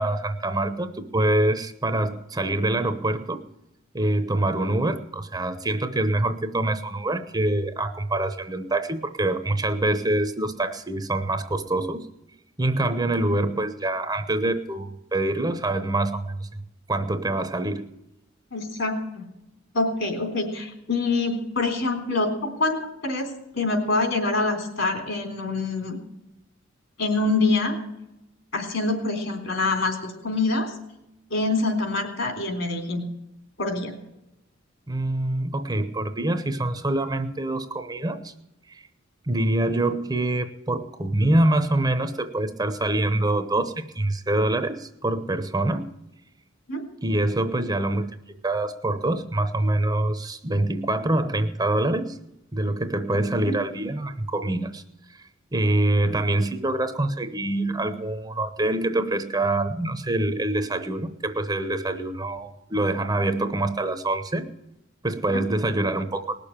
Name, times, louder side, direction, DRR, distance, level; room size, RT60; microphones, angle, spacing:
voice 1, 0.0-3.4 3.9-12.1 12.6-16.6 16.9-17.9 34.9-38.3 38.7-38.8 39.3-45.9 47.0-52.2 52.5-54.8 55.5-64.5 65.0-66.4, right 1 dB, 20° right, 9 dB, 0.9 m, -25 dB
voice 2, 18.5-19.3 19.7-26.0 27.0-27.8 28.5-30.7 31.3-33.1 33.6-33.9 46.7-46.8 53.5-53.6 65.3-65.5, left 3 dB, 65° left, 4 dB, 3.7 m, -25 dB
19.5 x 6.8 x 8.8 m, 0.88 s
head